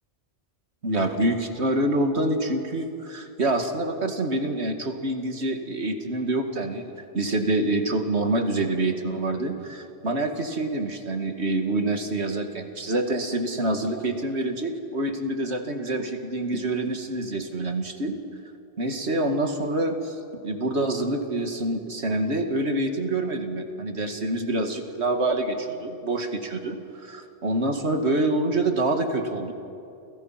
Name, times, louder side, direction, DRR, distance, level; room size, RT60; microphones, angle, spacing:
voice 1, 0.8-18.1 18.8-20.2 20.4-29.5, right 2 dB, 70° right, 5 dB, 2.5 m, -26 dB
29.5 x 29.5 x 5.9 m, 2.6 s
omnidirectional pair, 1.2 m